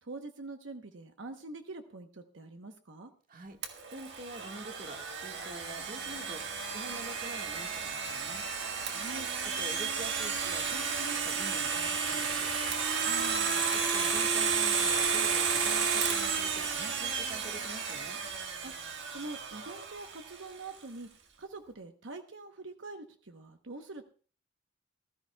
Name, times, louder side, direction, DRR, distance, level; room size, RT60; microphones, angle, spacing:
voice 1, 0.0-3.1 8.9-9.3 13.0-13.7 18.6-24.0, right 2 dB, 80° right, 6 dB, 1.0 m, -45 dB
Domestic sounds home sounds, 3.6-20.4, right 5 dB, 65° right, 1.6 m, -32 dB
voice 2, 3.9-6.4 6.7-8.4 9.4-12.5 13.7-18.2, right 1 dB, 45° right, 4 dB, 1.6 m, -46 dB
20.0 x 13.5 x 2.3 m, 0.41 s
head